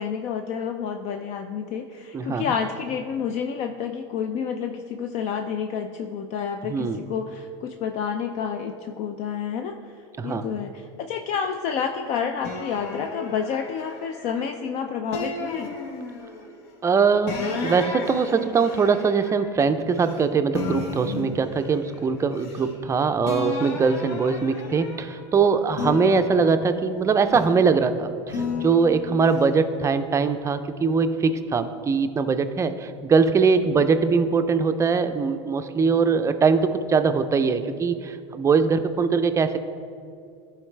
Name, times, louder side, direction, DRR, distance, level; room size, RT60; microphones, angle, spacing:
voice 1, 0.0-9.8 10.2-15.8, left 7 dB, 50° left, 6 dB, 0.4 m, -29 dB
voice 2, 2.1-2.5 6.7-7.0 10.2-10.5 16.8-39.6, right 5 dB, 20° right, 9 dB, 0.4 m, -22 dB
sound 1, 12.4-14.6 15.1-16.5 17.3-20.2 20.5-22.9 23.2-25.2 25.7-27.7 28.3-29.4, left 4 dB, 70° left, 1.1 m, -34 dB
12.5 x 4.7 x 3.3 m, 2.4 s
supercardioid pair, 105°, 15 cm